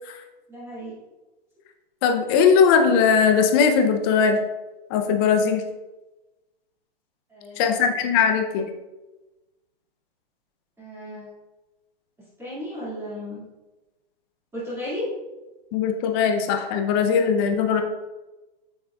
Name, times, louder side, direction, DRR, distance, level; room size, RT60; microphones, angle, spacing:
voice 1, 0.5-0.9 7.3-7.9 10.8-11.3 12.4-13.4 14.5-15.1, left 1 dB, 10° right, -10 dB, 2.2 m, -34 dB
voice 2, 2.0-4.4 4.9-5.6 7.6-8.7 15.7-17.8, left 6 dB, 25° left, 5 dB, 0.6 m, -20 dB
7.6 x 6.2 x 2.4 m, 1.1 s
hypercardioid pair, 150°, 30 cm